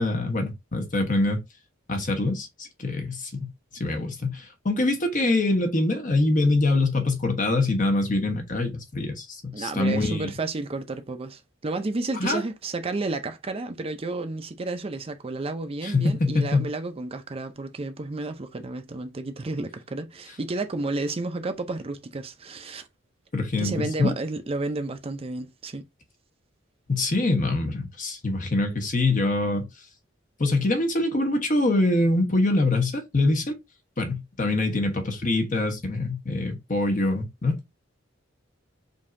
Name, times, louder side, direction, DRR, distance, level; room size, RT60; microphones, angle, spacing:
voice 1, 0.0-1.4 1.9-3.5 3.8-10.3 12.2-12.4 15.8-16.7 23.3-24.1 26.9-29.7 30.4-33.6 34.0-37.6, left 2 dB, 45° left, 1.1 m, -24 dB
voice 2, 9.5-22.9 23.6-25.8, right 2 dB, 30° right, 0.5 m, -31 dB
5.2 x 2.7 x 2.6 m
head